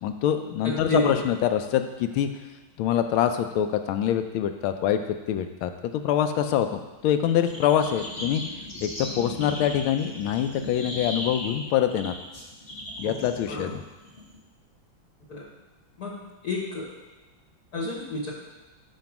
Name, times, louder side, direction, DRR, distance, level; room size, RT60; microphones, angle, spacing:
voice 1, 0.0-2.3 2.8-8.4 8.8-12.2 13.0-13.8, left 10 dB, 85° left, 8 dB, 1.4 m, -25 dB
voice 2, 0.6-1.2 13.0-13.2 13.5-13.7 15.3-15.5 16.0-16.2 16.4-16.9 17.7-18.3, left 1 dB, 55° left, -4 dB, 1.5 m, -30 dB
sound 1, 7.5-14.4, left 1 dB, 25° left, 1.0 m, -37 dB
5.3 x 5.1 x 5.8 m, 1.2 s
omnidirectional pair, 2.2 m